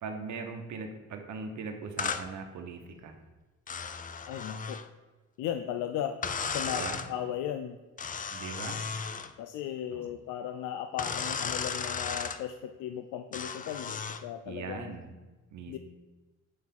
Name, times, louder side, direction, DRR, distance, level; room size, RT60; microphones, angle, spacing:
voice 1, 0.0-3.2 6.4-7.0 8.3-8.9 9.9-10.1 14.4-15.1 15.5-15.8, right 4 dB, 70° right, 5 dB, 1.1 m, -40 dB
sound 1, 2.0-2.3 3.7-4.9 6.2-7.1 8.0-9.3 11.0-12.4 13.3-14.3, left 6 dB, 25° left, 0.4 m, -35 dB
voice 2, 4.3-4.8 5.4-6.2 6.5-6.8 7.1-7.8 9.4-15.0 15.7-15.8, left 10 dB, 85° left, 8 dB, 0.5 m, -36 dB
7.6 x 3.6 x 5.9 m, 1.2 s
cardioid pair, 90°, 30 cm